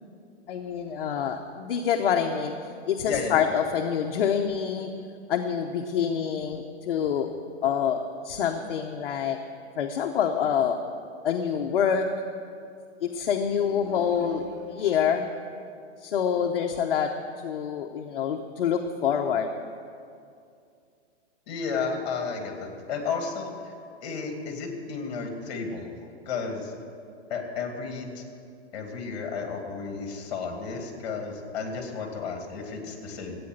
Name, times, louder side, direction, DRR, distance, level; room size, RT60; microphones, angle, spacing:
voice 1, 0.5-2.6 2.9-4.9 5.3-7.3 7.6-9.4 9.8-10.8 11.2-12.1 13.0-15.3 16.0-17.1 17.4-19.7, left 8 dB, 55° left, 3 dB, 0.8 m, -26 dB
voice 2, 3.0-3.6 21.5-23.7 24.0-25.9 26.3-26.7 27.3-28.2 28.7-33.4, left 5 dB, 35° left, 4 dB, 2.2 m, -32 dB
13.5 x 8.7 x 7.9 m, 2.4 s
hypercardioid pair, 170°, 34 cm